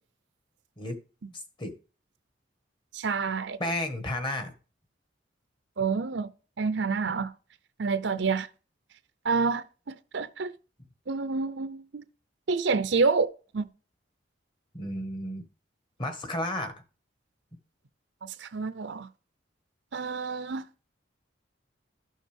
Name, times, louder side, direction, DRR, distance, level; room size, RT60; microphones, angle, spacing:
voice 1, 1.3-1.7 3.6-4.5 14.7-15.4 16.0-16.7, left 1 dB, 25° left, 1.5 m, -32 dB
voice 2, 2.9-3.6 5.8-6.3 6.6-7.3 7.8-8.5 9.2-10.5 11.1-12.0 12.5-13.3 13.5-13.7 18.2-19.1 19.9-20.6, right 4 dB, 70° right, 0.6 m, -28 dB
12.5 x 6.4 x 3.5 m
head